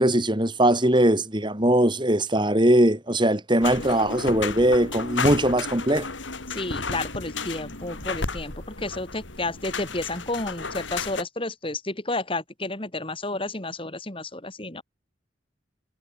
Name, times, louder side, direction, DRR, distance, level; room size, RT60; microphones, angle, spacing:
voice 1, 0.0-6.1, right 1 dB, 25° right, 3.5 m, -21 dB
sound 1, 3.6-11.2, left 4 dB, 85° left, 4.5 m, -33 dB
voice 2, 6.5-14.8, left 2 dB, 30° left, 3.6 m, -31 dB
head